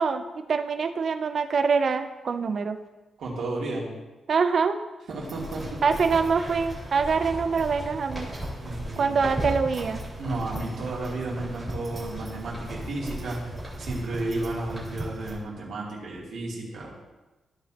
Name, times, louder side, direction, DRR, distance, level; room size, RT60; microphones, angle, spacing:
voice 1, 0.0-2.8 4.3-4.8 5.8-8.3 9.0-10.0, right 5 dB, 40° right, 8 dB, 0.5 m, -25 dB
voice 2, 3.2-3.9 5.1-5.6 8.5-9.1 10.2-13.4 13.8-16.9, right 2 dB, 65° right, -4 dB, 2.4 m, -32 dB
sound 1, 5.1-15.4, right 1 dB, 5° right, 3.0 m, -36 dB
14.5 x 5.0 x 2.9 m, 1.1 s
wide cardioid pair, 180°, 0 cm